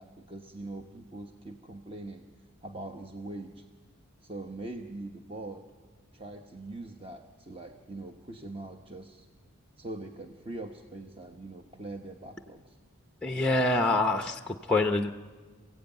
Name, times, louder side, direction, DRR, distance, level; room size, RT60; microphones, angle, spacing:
voice 1, 0.0-2.3 2.6-3.6 4.2-5.6 6.1-9.3 9.8-12.8, right 2 dB, 25° right, 4 dB, 1.0 m, -42 dB
voice 2, 13.2-15.1, left 2 dB, 5° left, 5 dB, 0.7 m, -26 dB
27.5 x 16.0 x 9.0 m, 1.5 s
head